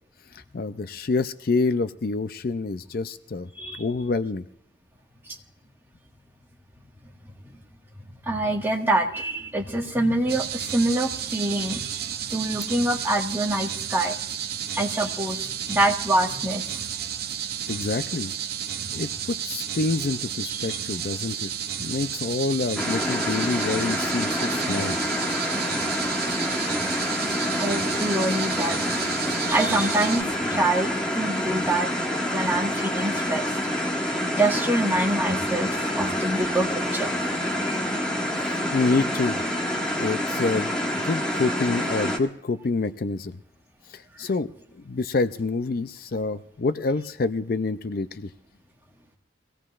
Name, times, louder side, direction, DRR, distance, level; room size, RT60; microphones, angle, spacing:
voice 1, 0.3-3.5 3.8-4.5 17.7-18.3 18.9-21.5 21.8-25.0 38.5-39.4 40.0-43.4 43.9-44.5 44.7-48.3, left 3 dB, 50° left, 11 dB, 0.4 m, -27 dB
voice 2, 8.2-14.2 14.7-16.8 27.6-28.9 29.4-31.9 32.3-33.6 34.4-37.1 37.5-37.9 44.2-44.3, right 1 dB, 10° right, -1 dB, 1.6 m, -25 dB
sound 1, 10.3-30.2, right 9 dB, 50° right, 0.6 m, -32 dB
sound 2, 22.8-42.2, equal, 5° left, 1.7 m, -27 dB
23.5 x 17.0 x 2.5 m, 0.76 s
head